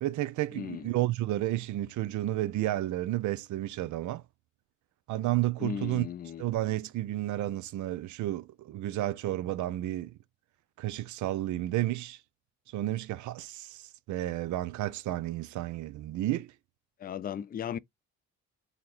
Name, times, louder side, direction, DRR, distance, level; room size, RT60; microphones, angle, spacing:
voice 1, 0.0-4.2 5.1-6.1 6.4-10.2 10.8-12.2 12.7-16.5, right 15 dB, 75° right, 0.5 m, -31 dB
voice 2, 0.5-0.9 5.6-6.4 17.0-17.8, left 8 dB, 30° left, 0.4 m, -36 dB
4.0 x 2.9 x 3.2 m
cardioid pair, 90°, 30 cm